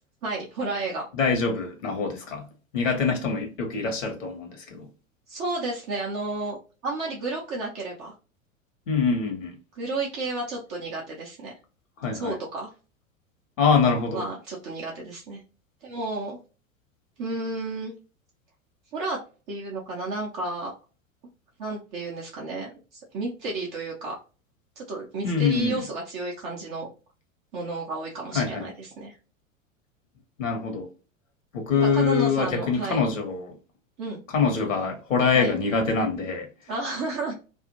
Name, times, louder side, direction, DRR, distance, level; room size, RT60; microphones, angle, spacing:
voice 1, 0.2-1.1 5.3-6.6 6.8-8.1 9.8-11.5 12.1-12.7 14.1-15.4 15.8-16.4 17.2-17.9 18.9-19.2 19.5-20.7 21.6-24.2 24.8-26.9 27.5-29.2 31.8-33.0 34.0-34.2 35.3-35.5 36.7-37.3, right 2 dB, 20° right, 0.3 m, -32 dB
voice 2, 1.1-2.5 2.7-4.9 8.9-9.6 12.0-12.4 13.6-14.3 25.2-25.8 28.3-28.7 30.4-30.9 31.5-33.6 34.3-36.5, left 5 dB, 65° left, 1.0 m, -24 dB
2.5 x 2.3 x 2.7 m
figure-of-eight pair, 90°, 41 cm